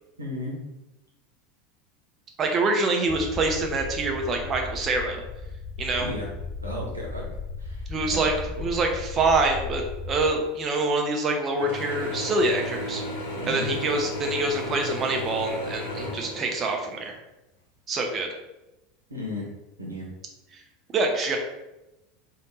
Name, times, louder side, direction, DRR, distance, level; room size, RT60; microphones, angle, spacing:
voice 1, 0.2-0.6 6.0-6.3 6.6-7.3 7.6-7.8 8.1-8.2 8.6-8.7 13.4-13.7 19.1-19.5 19.8-20.1, left 1 dB, 85° right, -3 dB, 1.1 m, -34 dB
voice 2, 2.4-5.2 5.8-6.1 7.9-8.3 8.6-13.0 13.5-17.2 17.9-18.3 20.5-20.6 20.9-21.4, right 2 dB, 30° right, 3 dB, 0.8 m, -25 dB
sound 1, 3.1-10.3, left 4 dB, 25° left, 0.7 m, -36 dB
Mechanisms / Drill, 11.6-17.1, left 1 dB, 65° left, 1.0 m, -34 dB
3.5 x 2.7 x 3.9 m, 0.97 s
figure-of-eight pair, 75°, 0 cm